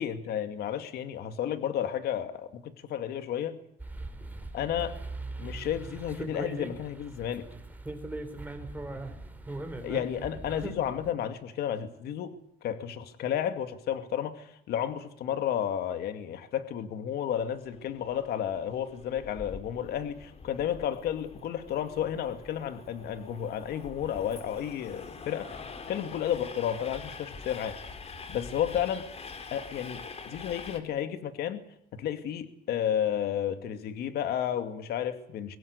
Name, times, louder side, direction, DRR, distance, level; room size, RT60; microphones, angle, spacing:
voice 1, 0.0-3.6 4.5-5.0 5.4-7.5 9.8-12.4 12.6-25.6 25.9-27.8 28.3-29.0 29.5-31.6 31.9-35.6, left 9 dB, 70° left, 9 dB, 2.3 m, -32 dB
sound 1, 3.8-11.1, right 2 dB, 10° right, 4.3 m, -40 dB
Train, 17.3-30.8, left 4 dB, 40° left, 4.0 m, -45 dB
24.0 x 20.0 x 8.3 m, 0.73 s
cardioid pair, 110°, 17 cm